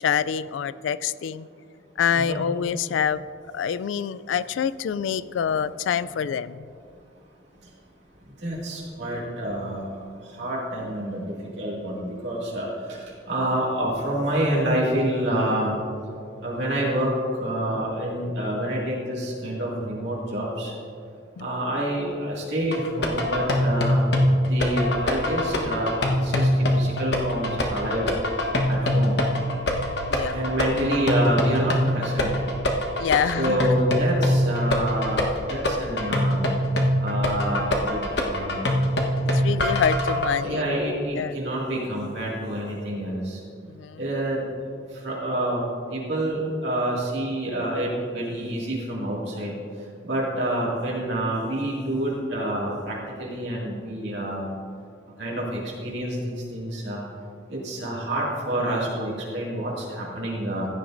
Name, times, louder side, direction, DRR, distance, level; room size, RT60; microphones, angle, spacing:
voice 1, 0.0-1.5 2.0-3.2 3.5-6.7 21.4-21.5 28.7-29.1 30.1-30.4 33.0-33.8 39.3-40.6 41.2-41.3 43.7-44.0, left 7 dB, 80° left, 17 dB, 0.3 m, -26 dB
voice 2, 2.1-2.4 8.4-9.9 10.2-15.7 16.4-17.1 17.4-20.7 21.4-24.1 24.5-28.1 28.7-29.2 30.3-32.3 33.2-36.4 37.0-38.7 40.4-43.4 44.0-44.4 44.9-45.6 45.9-49.5 50.0-54.5 55.2-57.0 57.5-60.7, right 1 dB, 65° right, -5 dB, 2.2 m, -27 dB
sound 1, 22.7-40.3, left 1 dB, 60° left, 1.1 m, -23 dB
15.5 x 10.0 x 2.6 m, 2.4 s
head